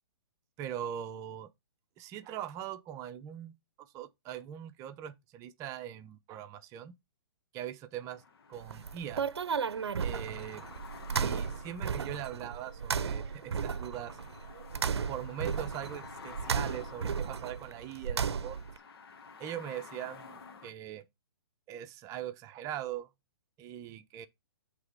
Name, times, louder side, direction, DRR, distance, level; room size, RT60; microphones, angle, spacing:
voice 1, 0.6-1.5 2.0-3.5 3.9-6.9 7.5-8.2 8.5-9.3 10.0-10.6 11.1-14.2 15.1-18.6 19.4-21.0 21.7-23.1 23.6-24.3, right 10 dB, 25° right, 0.7 m, -41 dB
sound 1, 8.0-20.7, left 5 dB, 65° left, 1.3 m, -52 dB
sound 2, 8.6-18.8, right 6 dB, 80° right, 0.6 m, -35 dB
7.9 x 3.5 x 5.4 m
hypercardioid pair, 135°, 13 cm